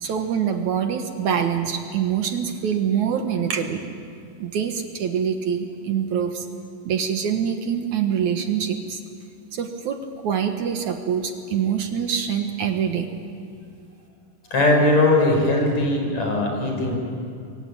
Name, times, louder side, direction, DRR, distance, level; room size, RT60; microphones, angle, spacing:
voice 1, 0.0-3.8 4.4-6.5 6.9-9.0 9.5-13.1, right 8 dB, 65° right, 5 dB, 2.6 m, -25 dB
voice 2, 14.5-16.9, left 2 dB, 55° left, 1 dB, 6.5 m, -19 dB
27.0 x 23.0 x 8.8 m, 2.4 s
omnidirectional pair, 3.9 m